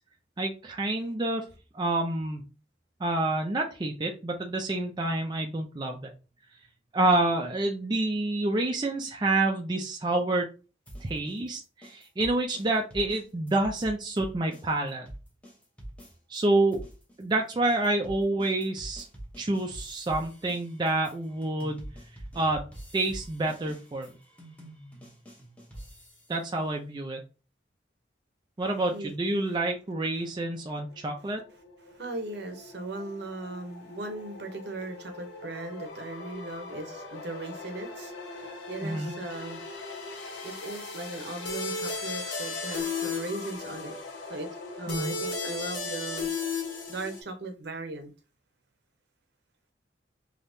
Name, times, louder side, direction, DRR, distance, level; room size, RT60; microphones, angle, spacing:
voice 1, 0.4-1.4 1.7-2.4 3.0-6.1 6.9-10.5 11.0-15.1 16.3-16.8 17.2-19.0 19.4-21.9 22.3-22.6 22.9-24.1 26.3-27.2 28.6-31.4 38.8-39.1 44.9-45.1, right 2 dB, 25° right, 0.4 m, -28 dB
sound 1, 10.9-16.4 16.7-26.5, right 1 dB, 5° left, 0.8 m, -46 dB
sound 2, 30.9-47.2, left 4 dB, 75° left, 1.0 m, -37 dB
voice 2, 31.8-39.6 40.4-43.9 44.3-44.5 44.8-46.3 46.9-48.1, right 2 dB, 60° right, 0.7 m, -38 dB
3.5 x 2.8 x 2.6 m
head